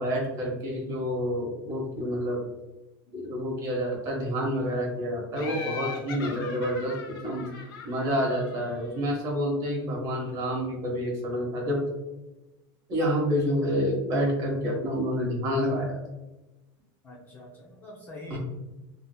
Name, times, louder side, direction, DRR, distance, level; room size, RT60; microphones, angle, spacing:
voice 1, 0.0-2.4 3.1-7.5 7.8-11.8 12.9-16.0 18.3-18.4, equal, 30° right, 0 dB, 0.9 m, -28 dB
Laughter, 5.4-9.0, left 4 dB, 85° left, 0.8 m, -40 dB
voice 2, 17.0-18.4, left 2 dB, 15° left, -4 dB, 0.4 m, -46 dB
3.4 x 2.7 x 2.2 m, 1.0 s
supercardioid pair, 175°, 12 cm